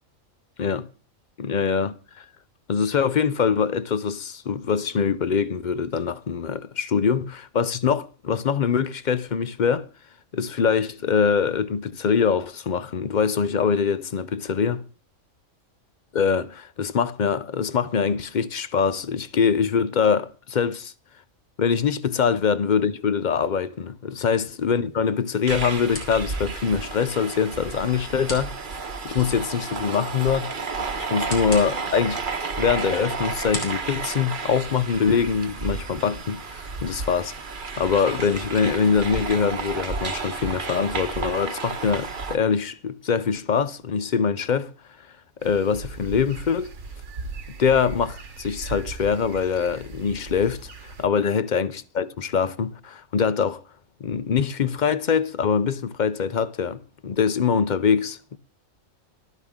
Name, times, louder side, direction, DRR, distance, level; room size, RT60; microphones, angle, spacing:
voice 1, 1.4-2.2 2.7-9.9 10.3-14.8 16.1-20.9 21.6-28.6 29.0-30.5 31.0-37.3 37.8-44.7 45.4-46.7 47.6-50.7 51.0-53.6 54.0-58.4, left 6 dB, 50° left, 0.6 m, -23 dB
sound 1, 24.2-35.1, left 3 dB, 80° left, 3.3 m, -42 dB
sound 2, 25.5-42.4, right 4 dB, 40° right, 1.2 m, -32 dB
sound 3, 45.4-51.1, right 4 dB, 65° right, 1.5 m, -38 dB
13.0 x 12.5 x 3.6 m
omnidirectional pair, 1.4 m